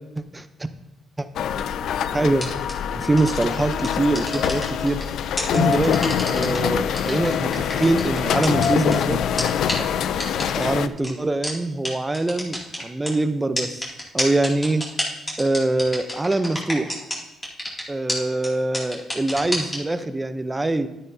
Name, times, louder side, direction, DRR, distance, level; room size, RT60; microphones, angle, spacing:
sound 1, 1.4-10.9, left 8 dB, 75° left, 0.4 m, -24 dB
voice 1, 2.1-2.5 2.9-5.0 5.5-9.2 9.8-9.9 10.6-13.8 14.1-14.9 15.4-17.0 17.9-20.9, right 2 dB, 15° right, 10 dB, 0.6 m, -23 dB
sound 2, 2.4-2.7 3.2-3.4 3.8-5.0 5.4-6.6 6.9-8.9 9.4-9.5 9.7-9.8 10.2-10.6 11.0-11.1 11.4-11.5 11.8-11.9 12.1-13.1 13.6-17.2 17.4-17.8 18.1-18.2 18.4-18.5 18.7-19.8, left 1 dB, 20° left, 2.5 m, -27 dB
11.0 x 9.3 x 2.7 m, 0.93 s
cardioid pair, 90°, 0 cm